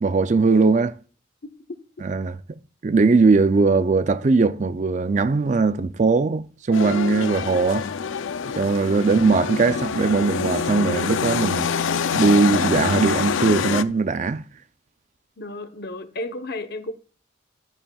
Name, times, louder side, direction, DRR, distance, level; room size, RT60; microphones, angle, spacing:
voice 1, 0.0-0.9 2.0-2.4 2.8-7.9 8.6-11.7 12.1-14.4, right 4 dB, 40° right, 0.4 m, -20 dB
sound 1, 6.7-13.8, left 6 dB, 80° left, 0.5 m, -25 dB
voice 2, 15.4-16.9, left 2 dB, 55° left, 0.9 m, -32 dB
11.5 x 9.0 x 2.3 m
head